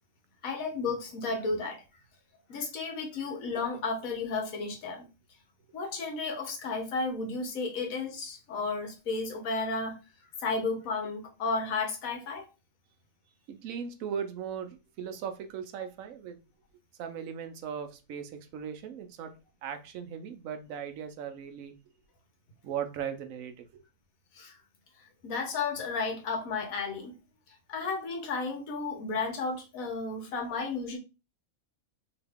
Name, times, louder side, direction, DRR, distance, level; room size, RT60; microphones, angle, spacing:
voice 1, 0.4-1.8 2.5-5.1 5.7-10.0 10.4-12.4 24.4-24.5 25.2-27.1 27.7-31.0, left 4 dB, 80° left, 1.3 m, -33 dB
voice 2, 13.5-16.4 17.0-19.3 19.6-21.7 22.6-23.8, right 8 dB, 75° right, 1.0 m, -38 dB
2.9 x 2.7 x 3.4 m
omnidirectional pair, 1.5 m